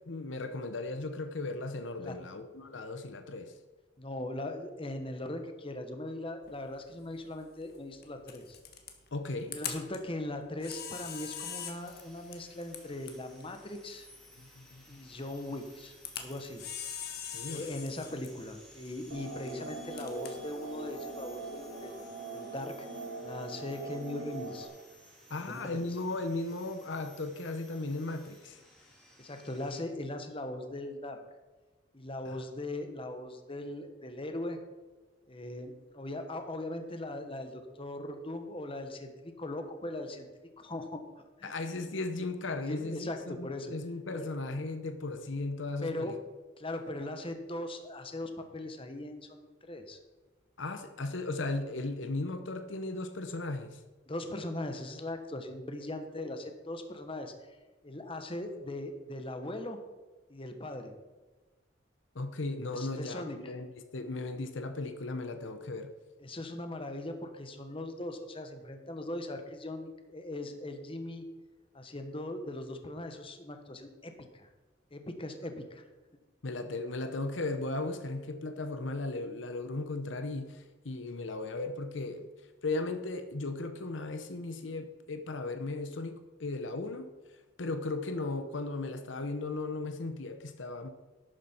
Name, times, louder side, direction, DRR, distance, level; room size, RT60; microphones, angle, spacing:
voice 1, 0.1-3.5 9.1-9.6 14.4-15.0 17.3-17.7 25.3-28.6 32.3-32.4 41.4-46.2 50.6-53.8 62.1-65.9 76.4-82.3 82.6-90.9, left 2 dB, 70° left, 8 dB, 0.9 m, -36 dB
voice 2, 4.0-8.6 9.5-14.1 14.9-16.6 17.5-22.9 23.2-24.7 25.4-25.8 29.2-31.2 31.9-34.6 35.3-40.3 40.6-41.5 42.7-43.7 44.1-44.3 45.8-46.1 46.6-50.0 54.1-57.3 57.8-59.8 60.3-60.9 62.7-63.4 66.2-71.2 71.7-74.5 74.9-75.8, left 1 dB, 30° left, 6 dB, 1.1 m, -39 dB
Camera, 6.4-21.9, left 8 dB, 55° left, 1.5 m, -45 dB
sound 1, 11.5-29.8, left 1 dB, 5° left, 2.3 m, -57 dB
sound 2, 19.1-24.7, right 3 dB, 65° right, 1.9 m, -42 dB
12.0 x 9.4 x 4.4 m, 1.2 s
head